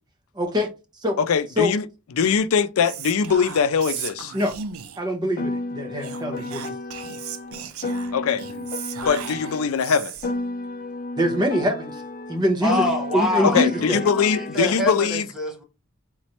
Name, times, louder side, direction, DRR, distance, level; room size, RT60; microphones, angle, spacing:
voice 1, 0.4-0.7 1.0-1.2 1.6-1.7 4.3-4.5 5.0-6.6 11.2-12.0 12.3-12.8 13.1-14.0, left 1 dB, 20° right, 0.9 m, -24 dB
voice 2, 1.2-1.8 2.1-4.3 8.1-8.4 9.0-10.1 13.4-15.3, left 6 dB, 85° left, 0.4 m, -22 dB
Whispering, 2.8-5.1 6.0-10.4, right 8 dB, 85° right, 0.5 m, -36 dB
Piano, 5.4-9.8 10.2-14.8, left 2 dB, 40° left, 0.6 m, -32 dB
voice 3, 12.6-15.6, left 1 dB, ahead, 1.2 m, -26 dB
3.9 x 3.1 x 2.9 m
head